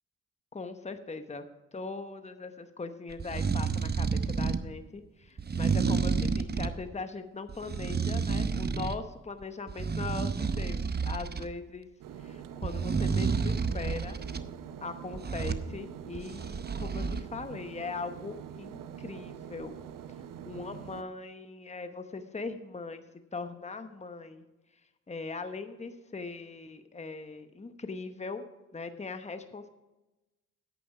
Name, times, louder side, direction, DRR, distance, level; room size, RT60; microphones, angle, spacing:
voice 1, 0.5-1.5 1.7-11.9 12.2-14.2 14.8-19.8 20.5-23.0 23.3-24.4 25.1-28.4 28.7-29.7, left 4 dB, 20° left, 9 dB, 0.9 m, -40 dB
sound 1, 3.1-4.7 5.4-6.8 7.5-9.0 9.4-11.5 12.6-14.4 15.1-15.7 16.1-17.2, right 5 dB, 30° right, 0.7 m, -30 dB
sound 2, 12.0-21.0, right 8 dB, 75° right, 0.7 m, -44 dB
10.0 x 8.5 x 4.9 m, 1.0 s
supercardioid pair, 55°, 33 cm